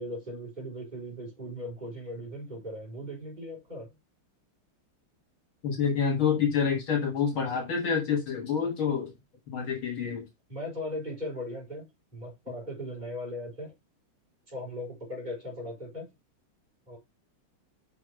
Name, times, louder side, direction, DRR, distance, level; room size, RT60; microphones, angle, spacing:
voice 1, 0.0-3.9 10.5-11.9 12.1-13.7 14.5-16.1 16.9-17.0, left 1 dB, 20° right, 4.3 m, -38 dB
voice 2, 5.6-9.1 9.5-10.2, left 6 dB, 70° left, 2.3 m, -27 dB
6.0 x 5.3 x 4.8 m
omnidirectional pair, 2.4 m